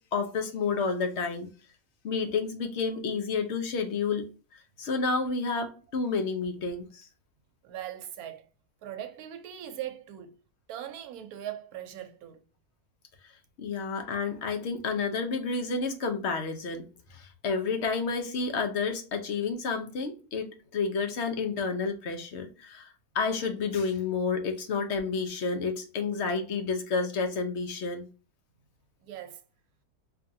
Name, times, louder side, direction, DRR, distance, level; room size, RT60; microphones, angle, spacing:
voice 1, 0.1-1.5 2.0-4.3 4.5-7.1 13.2-13.3 13.6-16.8 17.1-28.1, left 4 dB, 60° left, 0.8 m, -30 dB
voice 2, 7.6-8.5 8.8-10.4 10.7-12.4 29.0-29.4, right 11 dB, 80° right, 1.1 m, -40 dB
4.6 x 2.5 x 2.6 m
omnidirectional pair, 1.6 m